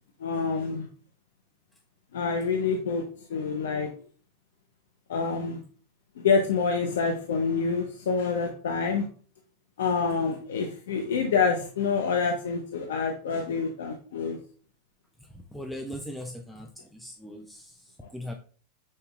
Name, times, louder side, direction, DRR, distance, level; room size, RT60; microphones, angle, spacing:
voice 1, 0.2-0.9 2.1-3.0 3.3-3.9 5.1-5.6 6.2-9.0 9.8-14.4, left 5 dB, 90° left, 4 dB, 0.6 m, -27 dB
voice 2, 15.5-18.3, equal, 5° left, 2 dB, 0.4 m, -39 dB
5.5 x 3.9 x 2.3 m, 0.43 s
supercardioid pair, 135°, 0 cm